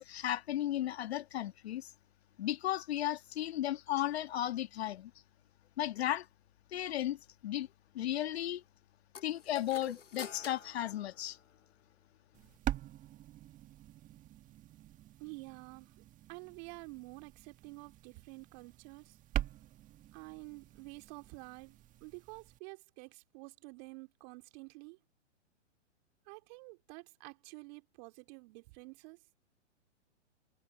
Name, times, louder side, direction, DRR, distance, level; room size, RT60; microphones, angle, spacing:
voice 1, 0.0-1.9 2.4-5.1 5.8-6.3 6.7-7.7 7.9-8.6 9.2-11.4, left 12 dB, 60° left, 1.9 m, -35 dB
sound 1, 9.1-11.8, left 6 dB, 80° left, 3.2 m, -48 dB
sound 2, 12.3-22.6, right 12 dB, 20° right, 1.6 m, -44 dB
voice 2, 15.2-15.9 16.3-19.2 20.1-25.0 26.3-29.2, right 30 dB, 40° right, 3.1 m, -50 dB
hypercardioid pair, 125°, 36 cm